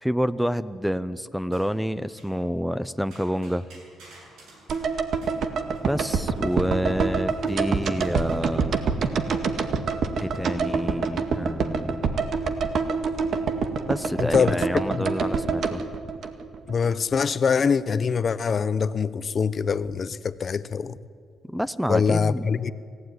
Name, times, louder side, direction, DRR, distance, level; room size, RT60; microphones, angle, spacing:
voice 1, 0.0-3.7 5.8-8.9 10.2-12.1 13.9-15.9 21.5-22.5, equal, ahead, 15 dB, 0.7 m, -28 dB
sound 1, 0.5-1.0 1.5-2.4 3.1-6.9 7.3-8.6, right 2 dB, 85° right, 7.7 m, -52 dB
sound 2, 4.7-16.9 17.1-17.2, right 5 dB, 60° right, 1.9 m, -26 dB
voice 2, 14.2-14.6 14.9-15.1 16.7-21.0 21.9-22.7, left 6 dB, 45° left, 15 dB, 0.9 m, -24 dB
27.0 x 16.0 x 9.7 m, 2.2 s
cardioid pair, 90°, 0 cm